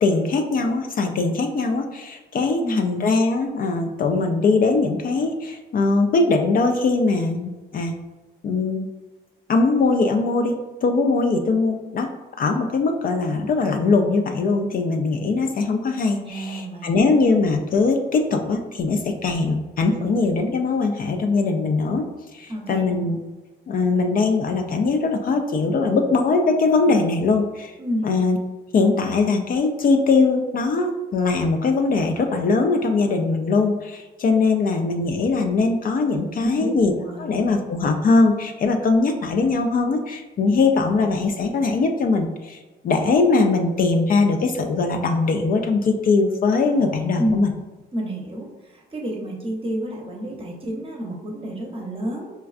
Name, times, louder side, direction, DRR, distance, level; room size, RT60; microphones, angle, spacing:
voice 1, 0.0-7.9 8.4-8.9 9.5-10.5 10.8-12.1 12.4-22.0 22.3-23.2 23.7-27.7 28.0-28.4 28.7-42.6 42.8-47.5, left 3 dB, 45° left, 4 dB, 0.4 m, -21 dB
voice 2, 2.5-3.0 16.2-17.2 22.5-22.9 27.8-28.1 36.4-36.8 37.1-37.3 47.2-47.5 47.9-48.5 48.9-52.3, equal, 25° right, 0 dB, 0.7 m, -29 dB
4.3 x 2.3 x 2.4 m, 1.2 s
cardioid pair, 90°, 20 cm